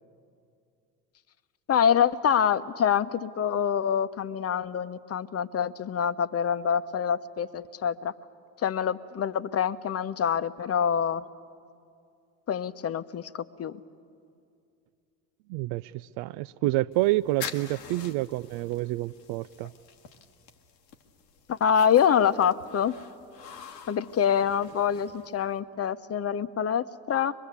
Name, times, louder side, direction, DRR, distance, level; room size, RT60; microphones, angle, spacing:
voice 1, 1.7-8.1 8.6-11.2 12.5-13.8 21.5-22.9 23.9-27.3, left 8 dB, 30° left, 13 dB, 0.9 m, -26 dB
voice 2, 15.5-19.7, right 18 dB, 55° right, 13 dB, 0.5 m, -28 dB
sound 1, 16.9-25.6, left 7 dB, 85° left, 1.3 m, -46 dB
24.0 x 21.0 x 8.3 m, 2.4 s
hypercardioid pair, 70°, 48 cm